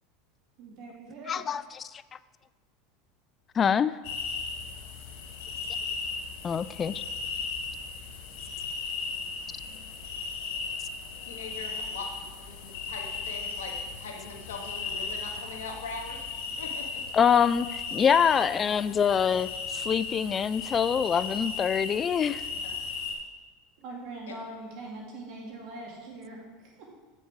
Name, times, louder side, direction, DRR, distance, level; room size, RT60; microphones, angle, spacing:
voice 1, 0.6-1.4 23.8-27.0, right 2 dB, 60° right, -2 dB, 2.4 m, -42 dB
voice 2, 1.3-1.8 3.6-4.0 6.4-7.0 17.1-22.4, left 7 dB, 30° left, 16 dB, 0.3 m, -25 dB
sound 1, 4.0-23.2, left 4 dB, 65° left, 1.1 m, -36 dB
voice 3, 11.2-16.2 16.6-17.0 22.6-22.7 24.3-24.4, left 4 dB, 85° left, 2 dB, 1.4 m, -41 dB
8.0 x 5.3 x 5.0 m, 1.3 s
hypercardioid pair, 95°, 0 cm